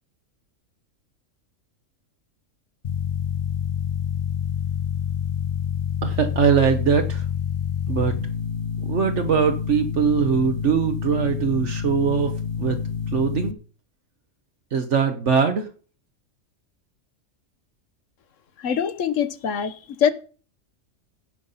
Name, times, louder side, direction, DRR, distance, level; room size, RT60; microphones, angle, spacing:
sound 1, 2.8-13.5, left 7 dB, 50° left, 0.7 m, -27 dB
voice 1, 6.0-7.2 7.9-8.2 8.8-12.3 12.6-12.8 13.1-13.6 14.7-15.7, right 6 dB, 65° right, 1.2 m, -21 dB
voice 2, 18.6-20.1, left 8 dB, 70° left, 1.2 m, -23 dB
16.0 x 5.3 x 5.5 m
omnidirectional pair, 1.4 m